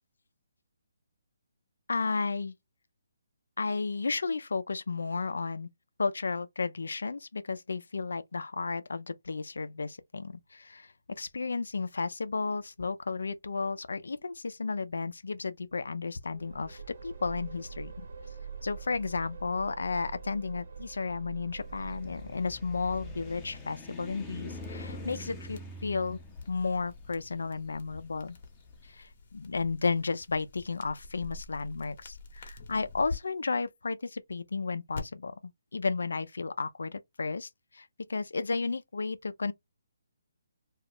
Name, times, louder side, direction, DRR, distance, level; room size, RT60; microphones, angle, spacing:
voice 1, 1.9-2.6 3.6-5.7 6.0-18.1 18.6-26.2 26.5-28.4 28.8-35.3 35.7-39.5, left 4 dB, 80° left, 0.5 m, -33 dB
sound 1, 16.3-24.1, right 5 dB, 60° right, 0.9 m, -45 dB
sound 2, 21.6-28.7, left 2 dB, 10° left, 0.7 m, -45 dB
sound 3, 24.5-33.2 34.9-35.0, left 3 dB, 50° left, 0.9 m, -46 dB
2.4 x 2.3 x 3.4 m
hypercardioid pair, 150°, 0 cm